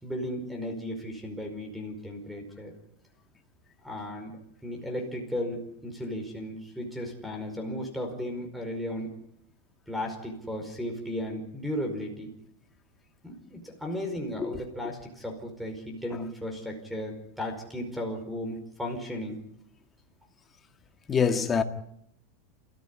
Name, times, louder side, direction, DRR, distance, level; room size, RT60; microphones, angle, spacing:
voice 1, 0.0-2.7 3.8-9.2 9.9-12.3 13.2-19.4, left 1 dB, ahead, 5.0 m, -35 dB
voice 2, 21.1-21.6, left 6 dB, 20° left, 2.0 m, -25 dB
28.5 x 14.5 x 9.9 m
supercardioid pair, 135°, 0 cm